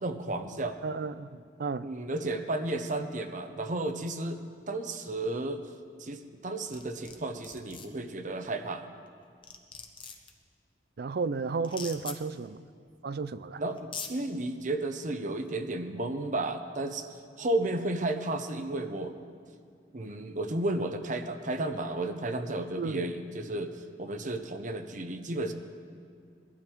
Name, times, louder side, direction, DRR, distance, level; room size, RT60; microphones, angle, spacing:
voice 1, 0.0-0.8 1.8-4.4 4.7-5.6 6.0-8.8 13.6-17.1 17.4-19.1 19.9-23.7 24.0-25.5, right 2 dB, 45° right, 7 dB, 0.9 m, -33 dB
voice 2, 0.8-1.9 11.0-12.6 13.0-13.6 22.8-23.1, right 4 dB, 65° right, 15 dB, 0.5 m, -33 dB
sound 1, 6.7-7.2 7.4-7.9 9.1-9.2 9.4-10.3 11.6-12.2 13.3-13.4 13.8-14.1, left 6 dB, 30° left, 1.1 m, -40 dB
21.0 x 12.0 x 4.6 m, 2.2 s
head